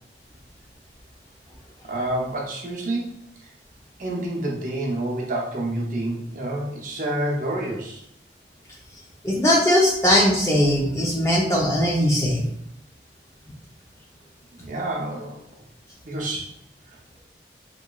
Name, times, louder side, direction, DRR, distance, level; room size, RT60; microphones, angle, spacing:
voice 1, 1.8-3.1 3.4-3.5 4.0-8.0 14.6-15.4 16.0-16.5, right 1 dB, 45° right, -2 dB, 0.7 m, -28 dB
voice 2, 9.2-12.4, equal, 15° left, -2 dB, 0.6 m, -19 dB
3.8 x 3.0 x 2.3 m, 0.75 s
head